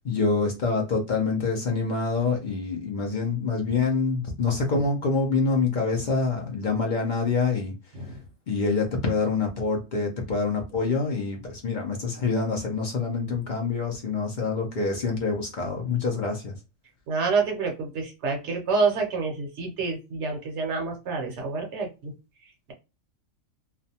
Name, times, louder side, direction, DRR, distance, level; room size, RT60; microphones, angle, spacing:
voice 1, 0.0-7.7 8.1-8.2 8.5-16.5, left 4 dB, 60° left, 0.5 m, -26 dB
voice 2, 17.1-22.1, right 4 dB, 65° right, 0.9 m, -28 dB
2.4 x 2.1 x 2.6 m
omnidirectional pair, 1.4 m